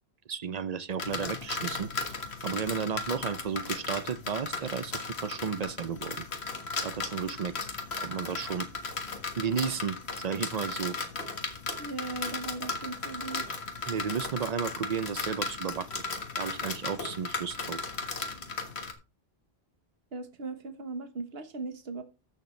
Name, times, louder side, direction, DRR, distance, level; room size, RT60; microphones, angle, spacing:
voice 1, 0.3-1.9 2.4-6.2 6.8-7.5 8.0-8.7 9.4-11.0 13.9-15.9 16.4-17.8, right 6 dB, 45° right, 0.6 m, -33 dB
sound 1, 1.0-18.9, left 4 dB, 85° left, 1.8 m, -36 dB
voice 2, 11.8-13.6 20.1-22.0, right 3 dB, 70° right, 1.4 m, -38 dB
14.0 x 6.7 x 3.2 m
omnidirectional pair, 1.1 m